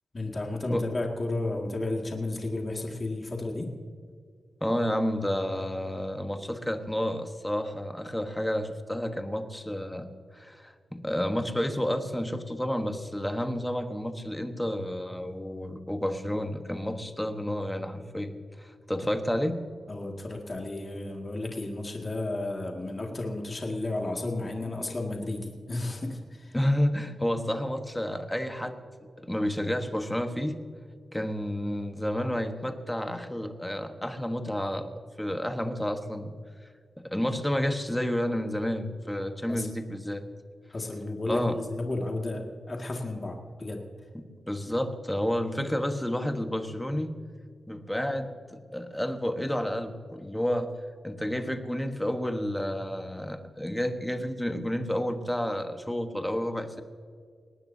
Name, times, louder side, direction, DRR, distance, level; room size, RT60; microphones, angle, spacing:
voice 1, 0.1-3.7 19.9-26.6 39.5-39.7 40.7-43.8, left 2 dB, 30° left, 0 dB, 2.0 m, -33 dB
voice 2, 4.6-10.1 10.3-19.7 26.5-28.8 29.2-30.6 31.1-34.9 35.2-36.3 37.0-40.3 41.2-41.6 44.1-47.1 47.7-50.7 51.0-56.8, equal, 5° left, 6 dB, 1.2 m, -30 dB
19.5 x 18.5 x 2.7 m, 2.1 s
wide cardioid pair, 125°, 0 cm